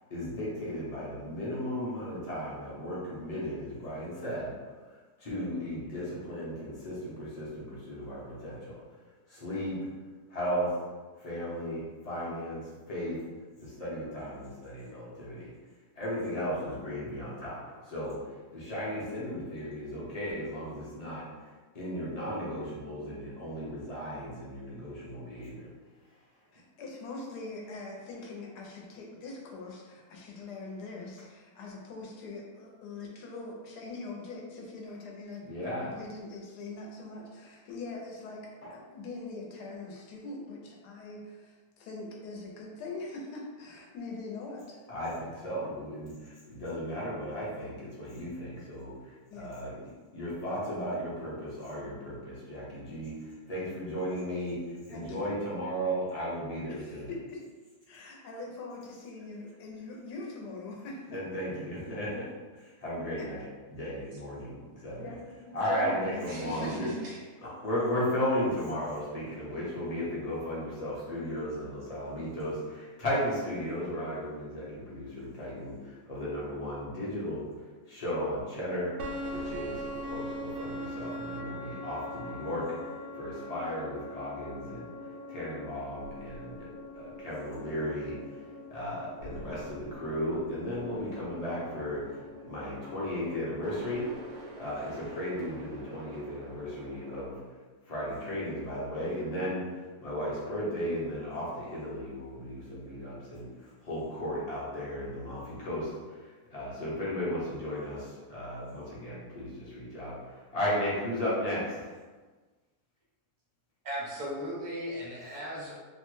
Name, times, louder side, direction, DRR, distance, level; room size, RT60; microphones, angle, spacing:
voice 1, 0.1-8.8 9.3-9.9 10.3-10.8 11.2-13.2 13.6-15.5 16.0-21.5 21.7-25.7 35.4-35.9 38.6-38.7 44.9-57.1 61.1-65.0 65.5-66.9 67.4-77.5 77.9-79.0 79.3-86.7 86.9-92.2 92.5-94.2 94.6-97.4 97.9-112.0, equal, 35° left, -7 dB, 0.6 m, -35 dB
voice 2, 26.5-44.8 49.3-49.5 53.6-53.8 54.9-55.3 56.8-57.4 57.9-61.4 63.2-63.5 65.0-65.2 65.4-67.1, left 3 dB, 80° left, -1 dB, 1.2 m, -42 dB
voice 3, 66.3-67.2 113.8-115.8, equal, 45° right, -5 dB, 0.6 m, -37 dB
sound 1, 79.0-97.3, equal, 85° right, 1.2 m, -42 dB
3.0 x 2.1 x 3.0 m, 1.3 s
omnidirectional pair, 1.7 m